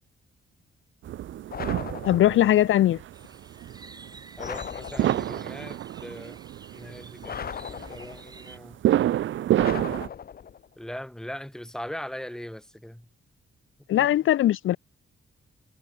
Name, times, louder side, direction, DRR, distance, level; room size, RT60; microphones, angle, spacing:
sound 1, 1.0-10.1, right 12 dB, 65° right, 0.5 m, -28 dB
sound 2, 1.5-2.6 4.4-5.5 7.2-8.4 9.6-10.7, left 8 dB, 45° left, 1.4 m, -38 dB
voice 1, 2.1-3.0 13.9-14.8, left 13 dB, 75° left, 0.5 m, -20 dB
sound 3, 3.1-8.6, right 3 dB, 20° right, 3.2 m, -50 dB
voice 2, 4.4-6.4 6.7-8.8 10.8-13.1 14.0-14.1, equal, 5° left, 3.3 m, -40 dB
wide cardioid pair, 165°, 21 cm